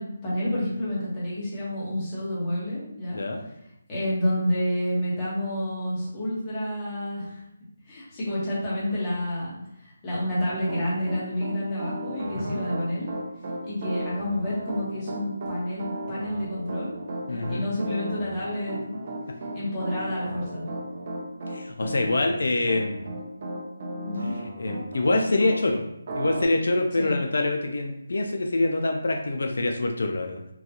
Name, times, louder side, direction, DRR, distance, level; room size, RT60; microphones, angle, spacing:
voice 1, 0.0-3.2 3.9-7.4 7.9-13.1 13.6-16.9 17.3-19.0 19.5-20.6 24.1-24.3 27.0-27.2, left 1 dB, 15° left, -8 dB, 1.1 m, -29 dB
voice 2, 3.1-3.4 12.4-12.6 17.3-17.7 21.5-23.1 24.6-25.8 26.1-30.4, left 2 dB, 70° left, 3 dB, 0.4 m, -25 dB
Piano, 10.4-25.6 26.1-26.4, right 1 dB, 35° right, 0.6 m, -35 dB
3.8 x 2.4 x 2.9 m, 0.81 s
hypercardioid pair, 175°, 0 cm